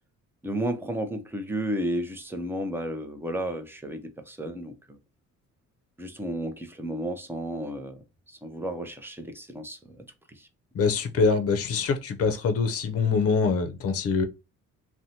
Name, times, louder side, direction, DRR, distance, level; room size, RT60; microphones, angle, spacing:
voice 1, 0.4-5.0 6.0-8.0 8.3-10.5, right 1 dB, 5° right, 0.5 m, -33 dB
voice 2, 10.7-14.2, left 5 dB, 50° left, 0.6 m, -24 dB
2.6 x 2.1 x 2.8 m
cardioid pair, 90°, 30 cm